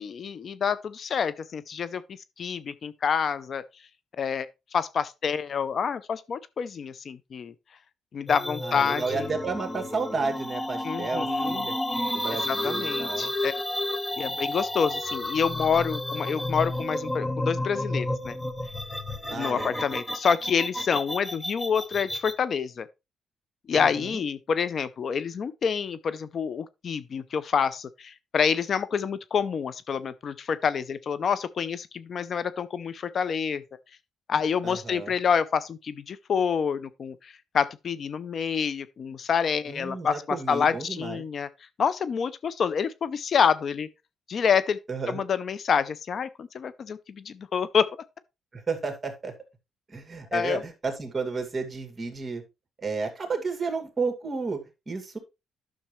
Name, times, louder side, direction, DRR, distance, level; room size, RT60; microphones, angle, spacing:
voice 1, 0.0-2.0 2.4-3.6 4.2-4.5 4.7-7.5 8.1-9.3 10.8-11.7 12.5-13.5 14.2-18.4 19.3-22.9 23.7-33.6 34.3-41.5 41.8-43.9 44.3-44.8 45.1-47.9 50.3-50.6, left 6 dB, 50° left, 0.5 m, -27 dB
sound 1, 8.3-22.3, left 1 dB, 15° left, 1.1 m, -31 dB
voice 2, 8.6-11.7 12.1-13.3 19.3-19.7 23.7-24.2 34.6-35.1 39.7-41.2 44.9-45.2 48.5-49.3 49.9-52.4 52.8-55.2, right 4 dB, 30° right, 2.3 m, -32 dB
10.0 x 6.5 x 3.2 m
cardioid pair, 90°, 0 cm